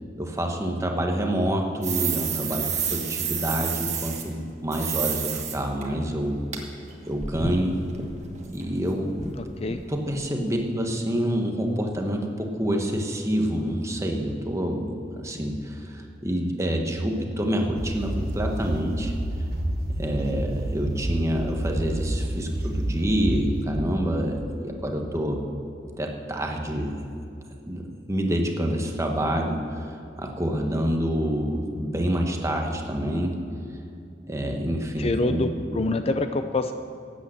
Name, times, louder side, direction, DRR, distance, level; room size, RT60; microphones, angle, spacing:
voice 1, 0.2-6.4 7.0-7.8 8.5-9.1 9.9-19.1 20.0-25.4 26.0-26.9 27.6-27.8 28.1-33.4 34.3-35.4, equal, 15° right, 2 dB, 1.2 m, -27 dB
sound 1, 1.8-4.2 4.7-5.6 5.8-5.9 6.5-6.6 6.9-8.9 9.2-9.4 9.6-9.8 10.1-10.2 10.5-10.7, right 7 dB, 40° right, 1.5 m, -30 dB
voice 2, 9.4-9.8 35.0-36.7, left 2 dB, 35° left, 9 dB, 0.4 m, -26 dB
sound 2, 17.8-23.6, right 1 dB, 55° right, 1.5 m, -29 dB
12.5 x 8.5 x 7.8 m, 2.6 s
head